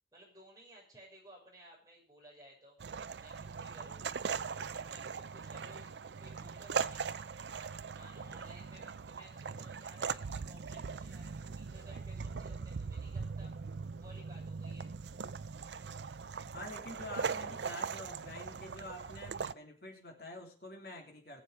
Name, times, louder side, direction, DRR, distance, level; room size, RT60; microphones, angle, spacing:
voice 1, 0.1-2.8 3.2-4.0 4.5-5.9 6.2-7.1 7.6-13.5 14.0-14.9, right 1 dB, 20° right, -2 dB, 6.0 m, -57 dB
sound 1, 2.8-19.5, right 5 dB, 75° right, 0.5 m, -40 dB
voice 2, 16.5-21.4, left 1 dB, 55° left, 1 dB, 3.2 m, -47 dB
19.5 x 7.5 x 5.1 m, 0.39 s
head